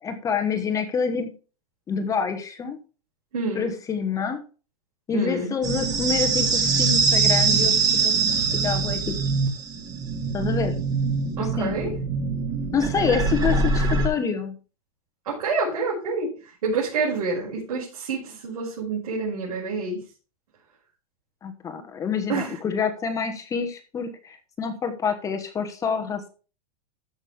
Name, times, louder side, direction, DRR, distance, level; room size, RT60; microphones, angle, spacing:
voice 1, 0.0-1.3 1.9-2.8 3.5-4.4 5.1-7.7 8.0-9.1 10.3-10.7 11.4-11.7 12.7-14.5 21.4-26.3, left 6 dB, 15° left, 7 dB, 1.3 m, -27 dB
voice 2, 3.3-3.7 5.1-5.5 11.4-11.9 15.3-16.3 16.6-20.0 22.3-22.5, right 4 dB, 85° right, -5 dB, 5.5 m, -27 dB
sound 1, 5.6-14.1, right 4 dB, 20° right, 2.1 m, -23 dB
14.5 x 6.4 x 3.5 m, 0.35 s
supercardioid pair, 155°, 19 cm